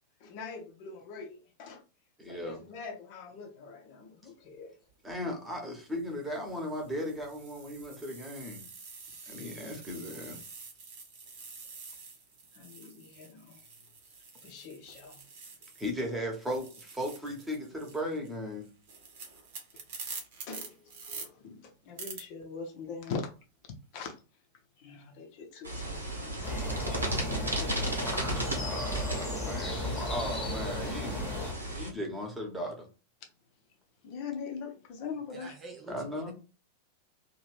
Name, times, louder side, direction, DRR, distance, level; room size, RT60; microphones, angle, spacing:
voice 1, 0.2-1.8 2.3-4.8 12.5-13.6 14.0-14.1 14.4-15.2 20.5-23.3 23.9-24.1 24.8-28.4 34.0-35.6, left 5 dB, 45° left, 0.7 m, -43 dB
voice 2, 2.2-2.6 5.0-8.6 9.3-10.4 15.8-18.7 28.6-32.9 35.9-36.3, equal, 10° right, 1.1 m, -37 dB
sound 1, 4.9-5.1 5.9-16.1 16.3-21.3 22.0-22.2, right 4 dB, 50° right, 0.9 m, -47 dB
sound 2, 25.6-31.9, right 1 dB, 80° right, 1.1 m, -35 dB
sound 3, 26.4-31.5, left 2 dB, 20° left, 1.0 m, -35 dB
voice 3, 35.3-36.3, right 3 dB, 25° right, 0.5 m, -47 dB
2.8 x 2.5 x 3.3 m
figure-of-eight pair, 90°, 0 cm